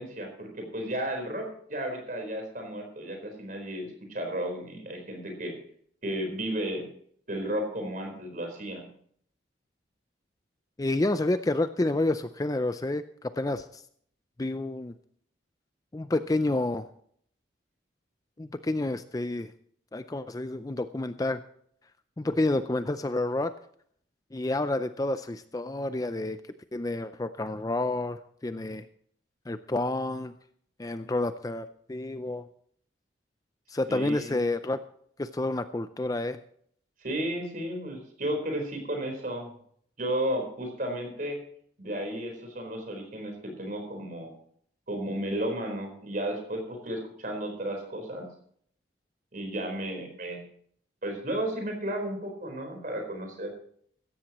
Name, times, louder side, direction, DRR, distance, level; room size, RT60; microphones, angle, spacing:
voice 1, 0.0-5.6 6.0-6.9 7.3-8.9 33.9-34.5 37.0-39.5 40.0-41.4 41.8-44.4 44.9-48.3 49.3-50.4 51.0-53.5, right 1 dB, 45° right, 4 dB, 4.3 m, -33 dB
voice 2, 10.8-13.8 14.4-14.9 15.9-16.9 18.4-19.5 19.9-21.4 22.2-23.5 24.3-26.4 26.7-28.9 29.5-30.3 30.8-32.5 33.7-34.8 35.2-36.4, left 2 dB, 20° left, 11 dB, 0.4 m, -29 dB
16.5 x 14.0 x 3.0 m, 0.62 s
head